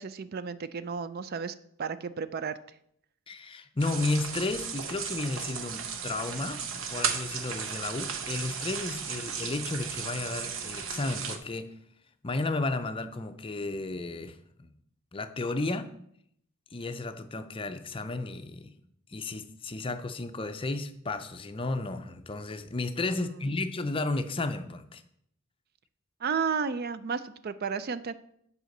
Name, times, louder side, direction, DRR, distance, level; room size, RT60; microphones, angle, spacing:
voice 1, 0.0-2.6 23.1-23.6 26.2-28.1, right 5 dB, 45° right, 14 dB, 0.4 m, -33 dB
voice 2, 3.3-11.7 12.2-14.7 15.1-15.9 16.7-18.7 19.1-25.0, left 2 dB, 25° left, 9 dB, 0.5 m, -33 dB
sound 1, 3.8-11.4, right 7 dB, 60° right, 0.9 m, -35 dB
7.9 x 4.9 x 6.6 m, 0.71 s
head